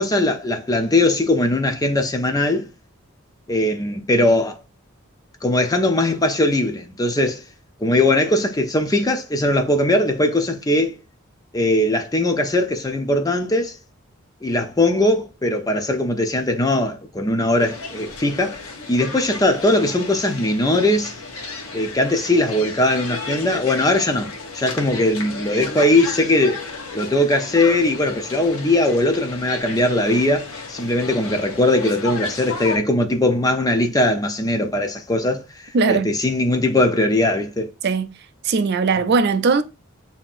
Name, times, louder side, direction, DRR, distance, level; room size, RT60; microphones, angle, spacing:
voice 1, 0.0-2.7 3.5-4.6 5.4-7.4 7.8-11.0 11.5-13.8 14.4-18.6 18.9-21.1 21.7-26.6 26.9-37.7, left 1 dB, 15° left, 0.5 m, -20 dB
sound 1, 17.6-32.8, left 4 dB, 80° left, 1.0 m, -34 dB
voice 2, 35.7-36.1 37.8-38.1 38.4-39.6, right 4 dB, 50° right, 0.4 m, -19 dB
7.2 x 2.8 x 2.5 m
head